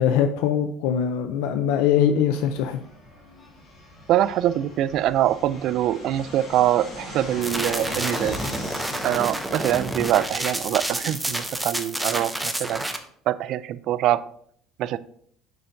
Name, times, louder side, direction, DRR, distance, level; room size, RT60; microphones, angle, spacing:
voice 1, 0.0-2.8, left 8 dB, 85° left, 0.5 m, -22 dB
Fixed-wing aircraft airplane, 2.3-11.6, left 1 dB, 40° left, 2.3 m, -39 dB
voice 2, 4.1-8.4 9.0-12.8 13.3-14.3 14.8-15.0, right 12 dB, 60° right, 0.3 m, -24 dB
sound 1, 7.4-13.0, right 1 dB, 5° right, 0.6 m, -29 dB
7.6 x 5.7 x 2.6 m
cardioid pair, 125°, 0 cm